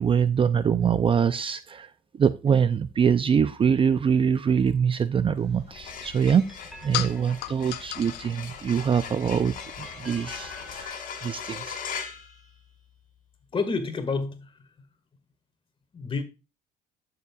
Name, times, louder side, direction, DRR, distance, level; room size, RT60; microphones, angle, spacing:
voice 1, 0.0-1.9 2.2-6.5 6.8-11.8, right 7 dB, 30° right, 0.5 m, -24 dB
sound 1, 5.4-10.9, left 14 dB, 75° left, 0.5 m, -39 dB
sound 2, 5.6-13.1, left 7 dB, 55° left, 2.4 m, -40 dB
sound 3, 5.6-8.0 8.9-11.4, equal, ahead, 1.9 m, -49 dB
voice 2, 13.5-14.7 15.9-16.2, left 4 dB, 30° left, 1.9 m, -29 dB
12.0 x 6.8 x 2.4 m
cardioid pair, 110°, 17 cm